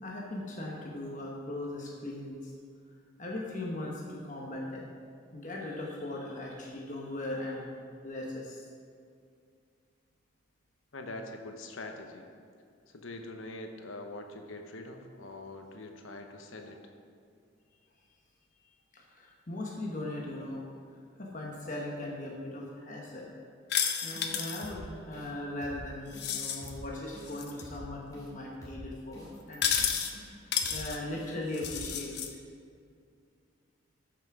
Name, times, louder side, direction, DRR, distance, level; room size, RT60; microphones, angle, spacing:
voice 1, 0.0-2.5 3.2-4.8 5.3-7.7 8.0-8.6 18.9-20.6 21.2-23.3 24.0-30.5 30.7-32.2, left 1 dB, 40° left, -2 dB, 1.2 m, -39 dB
voice 2, 10.9-12.3 12.9-16.8, left 2 dB, 75° left, 4 dB, 1.0 m, -43 dB
sound 1, 23.7-24.7 26.1-26.7 27.3-27.6 29.5-30.1 30.5-31.0 31.5-32.3, left 8 dB, 55° left, 0.8 m, -31 dB
sound 2, 24.1-24.3 24.6-24.8 25.1-25.3 25.6-25.8 26.1-26.3 26.6-26.8 27.1-27.3 27.6-27.8 28.1-28.3 28.6-28.8 29.1-29.3 29.6-29.8 30.1-30.3 30.6-30.8 31.1-31.3 31.6-31.8, equal, 15° left, 2.6 m, -47 dB
14.0 x 5.9 x 4.9 m, 2.3 s
head